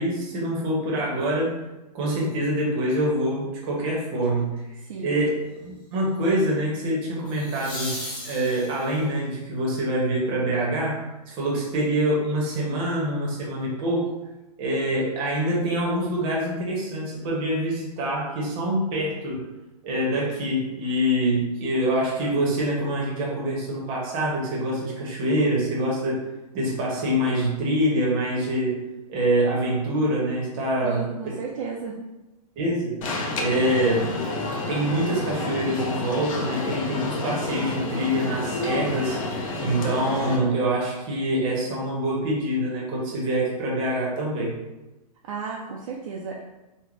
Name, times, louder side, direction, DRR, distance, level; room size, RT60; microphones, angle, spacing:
voice 1, 0.0-1.6 1.9-4.6 5.0-7.9 8.2-14.0 14.6-19.4 19.8-26.2 26.5-28.8 29.1-31.1 32.6-33.0 33.4-34.2 34.7-39.2 39.6-44.5, right 1 dB, 25° right, -4 dB, 0.8 m, -25 dB
sound 1, 4.2-4.6 7.2-9.1 12.0-12.1, left 1 dB, 20° left, 0.9 m, -36 dB
voice 2, 4.8-5.3 30.8-32.0 45.2-46.4, right 5 dB, 55° right, -2 dB, 0.4 m, -34 dB
Alarm, 33.0-40.4, left 2 dB, 55° left, 0.5 m, -29 dB
3.3 x 2.1 x 2.4 m, 1.0 s
hypercardioid pair, 155°, 21 cm